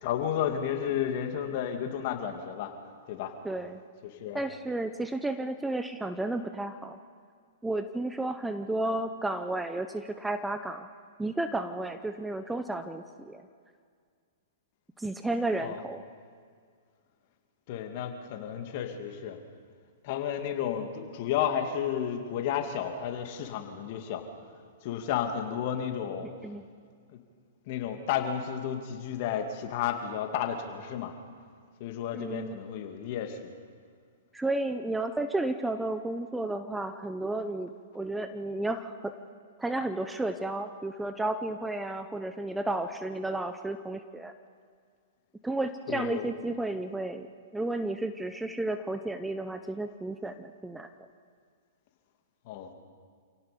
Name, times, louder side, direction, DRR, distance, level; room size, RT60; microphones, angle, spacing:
voice 1, 0.0-2.7 3.1-3.3 4.0-4.4 15.6-15.8 17.7-19.4 20.0-24.2 24.8-26.3 27.1-27.2 27.7-31.1 31.8-33.5 45.9-46.3 52.5-52.7, left 9 dB, 50° left, 5 dB, 2.5 m, -32 dB
voice 2, 3.4-3.8 4.3-7.0 7.6-10.9 11.2-13.4 15.0-16.0 26.4-26.6 32.1-32.6 34.3-39.1 39.6-44.3 45.4-47.3 47.5-50.9, right 2 dB, 5° right, 9 dB, 0.8 m, -32 dB
28.0 x 17.5 x 5.3 m, 2.1 s
hypercardioid pair, 120°, 0 cm